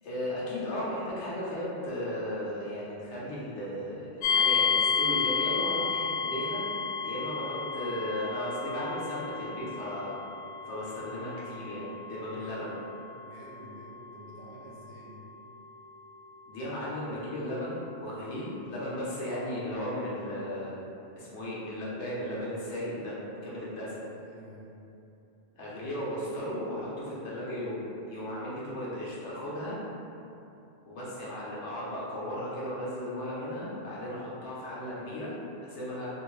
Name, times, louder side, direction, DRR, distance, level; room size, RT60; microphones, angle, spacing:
voice 1, 0.0-6.6 7.0-10.1 10.6-12.7 16.5-20.8 21.1-23.2 23.4-24.0 25.5-29.8 30.8-36.1, left 1 dB, 85° left, -7 dB, 1.1 m, -35 dB
sound 1, 4.2-19.0, left 6 dB, 65° left, 0.8 m, -33 dB
voice 2, 12.3-12.6 13.2-15.3 23.7-24.8, right 1 dB, 65° right, -4 dB, 0.7 m, -49 dB
2.9 x 2.7 x 3.1 m, 2.8 s
omnidirectional pair, 1.1 m